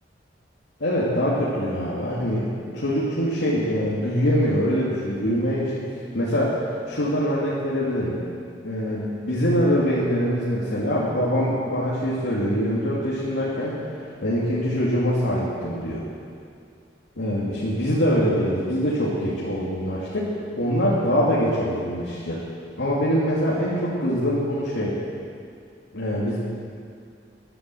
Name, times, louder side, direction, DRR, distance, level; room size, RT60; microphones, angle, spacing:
voice 1, 0.8-5.8 6.1-8.2 8.6-13.8 14.2-16.0 17.2-20.3 20.6-22.4 22.8-24.9 25.9-26.4, equal, 85° left, -7 dB, 2.5 m, -24 dB
14.0 x 11.5 x 7.8 m, 2.4 s
head